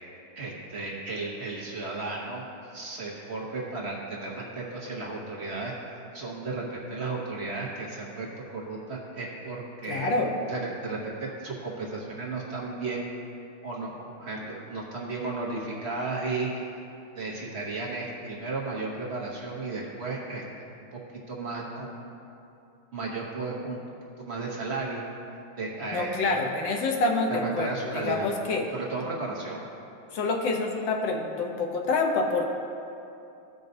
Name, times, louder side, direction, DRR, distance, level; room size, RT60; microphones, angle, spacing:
voice 1, 0.4-2.5 2.7-5.7 6.1-10.1 10.5-13.0 13.6-16.6 17.1-20.4 21.3-22.1 22.9-23.8 24.2-25.0 25.6-26.4 27.3-28.3 28.7-29.6, right 3 dB, 50° right, -3 dB, 0.8 m, -34 dB
voice 2, 9.9-10.3 25.9-28.7 30.1-32.5, left 3 dB, 70° left, 2 dB, 1.4 m, -27 dB
15.0 x 5.3 x 2.6 m, 2.8 s
omnidirectional pair, 2.3 m